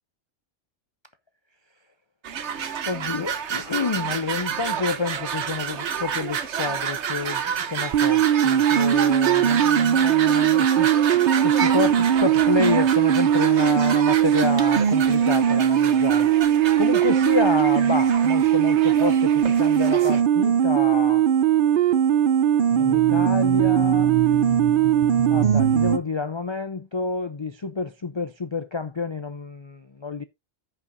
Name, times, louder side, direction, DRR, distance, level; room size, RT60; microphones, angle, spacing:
sound 1, 2.2-20.2, right 8 dB, 75° right, 1.2 m, -29 dB
voice 1, 2.9-7.4 7.7-10.9 11.4-21.3 22.7-24.1 25.3-30.2, left 4 dB, 35° left, 0.4 m, -29 dB
sound 2, 7.9-26.0, right 9 dB, 55° right, 0.8 m, -19 dB
14.5 x 5.5 x 2.6 m
omnidirectional pair, 1.2 m